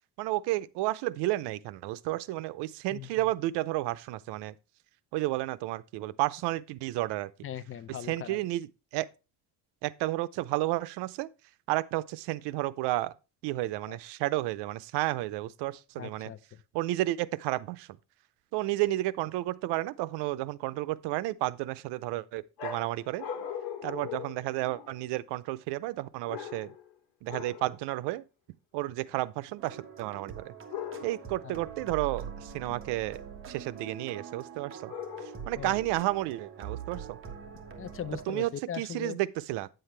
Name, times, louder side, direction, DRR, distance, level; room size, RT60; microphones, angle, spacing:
voice 1, 0.2-4.5 5.1-7.3 8.1-9.1 9.8-11.3 11.7-13.1 13.4-16.3 16.7-17.9 18.5-23.3 23.8-26.7 27.2-28.2 28.7-30.5 31.0-33.2 33.5-34.9 35.5-37.2 38.3-38.5 38.8-39.7, right 17 dB, 85° right, 0.7 m, -32 dB
voice 2, 7.4-8.4 13.9-14.0 16.0-16.6 31.4-31.9 35.6-35.8 37.8-39.2, left 9 dB, 35° left, 0.5 m, -40 dB
sound 1, 22.6-25.1 26.3-26.9 27.3-27.7 30.7-31.4 34.9-35.6, left 8 dB, 60° left, 2.2 m, -40 dB
sound 2, 29.6-38.2, right 7 dB, 30° right, 1.5 m, -43 dB
9.3 x 7.8 x 3.2 m
cardioid pair, 145°, 40 cm